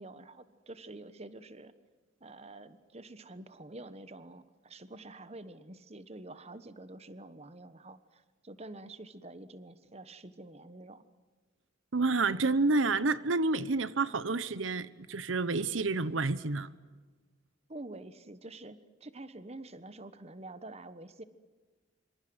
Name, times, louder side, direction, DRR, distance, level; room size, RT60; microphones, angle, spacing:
voice 1, 0.0-1.7 2.2-11.0 17.7-21.2, right 2 dB, 35° right, 1.3 m, -47 dB
voice 2, 11.9-16.7, right 3 dB, 85° right, 1.0 m, -29 dB
26.0 x 26.0 x 7.9 m
head